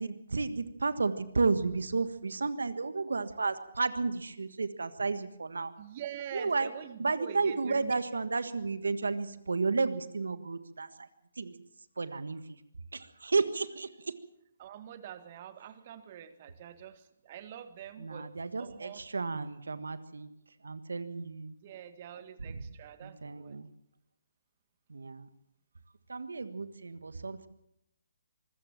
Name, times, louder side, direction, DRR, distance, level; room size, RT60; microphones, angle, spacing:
voice 1, 0.0-5.7 6.3-6.7 7.0-11.1 11.3-11.6 12.0-12.6 12.9-14.2 18.0-20.3 20.6-21.5 22.4-22.6 23.0-23.7 24.9-25.3 26.1-27.5, right 4 dB, 80° right, 12 dB, 1.5 m, -32 dB
voice 2, 5.8-8.0 14.6-18.3 18.6-19.0 21.6-23.6, right 10 dB, 40° right, 11 dB, 1.9 m, -45 dB
24.0 x 15.0 x 7.4 m, 0.83 s
figure-of-eight pair, 140°, 0 cm